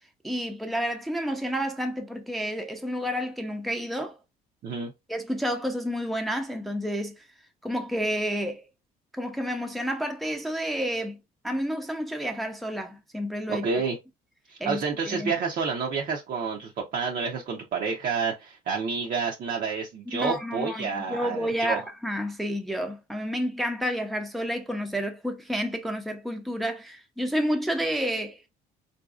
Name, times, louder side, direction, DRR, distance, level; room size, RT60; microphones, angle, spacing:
voice 1, 0.2-4.2 5.1-7.3 7.6-8.6 9.1-11.2 11.4-13.7 14.6-15.3 20.1-28.4, equal, ahead, 0.5 m, -30 dB
voice 2, 13.5-14.0 14.5-21.8, right 5 dB, 55° right, 0.6 m, -29 dB
3.9 x 2.6 x 2.3 m
cardioid pair, 110°, 17 cm